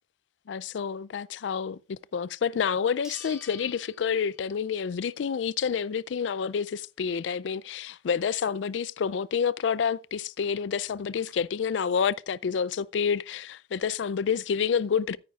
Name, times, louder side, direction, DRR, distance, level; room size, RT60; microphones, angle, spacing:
voice 1, 0.5-15.2, left 6 dB, 75° left, 0.4 m, -28 dB
sound 1, 2.2-2.3 3.0-4.8 5.2-5.3 9.9-10.0 10.2-10.3 10.9-11.3, left 2 dB, 5° right, 4.0 m, -49 dB
13.5 x 9.4 x 2.4 m
head